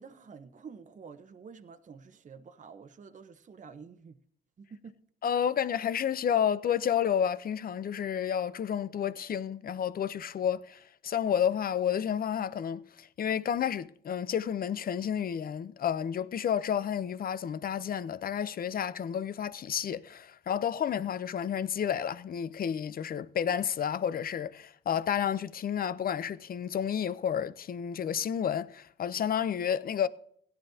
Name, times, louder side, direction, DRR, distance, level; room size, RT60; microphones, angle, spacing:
voice 1, 0.0-4.2 4.6-5.0, right 5 dB, 40° right, 0.9 m, -49 dB
voice 2, 5.2-30.1, left 8 dB, 45° left, 0.7 m, -31 dB
17.0 x 11.0 x 2.8 m
cardioid pair, 90°, 20 cm